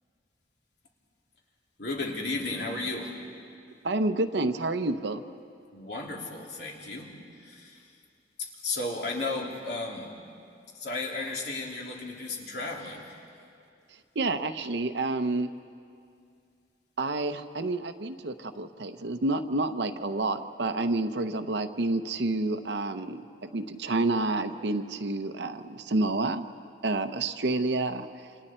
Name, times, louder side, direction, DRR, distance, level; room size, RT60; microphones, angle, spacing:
voice 1, 1.8-3.2 5.7-7.1 7.4-7.8 8.4-10.1 10.7-13.2, left 2 dB, 65° left, -1 dB, 3.2 m, -34 dB
voice 2, 3.8-5.2 14.1-15.5 17.0-26.5 26.8-28.3, right 2 dB, 75° right, 8 dB, 0.8 m, -29 dB
28.5 x 27.5 x 4.4 m, 2.4 s
head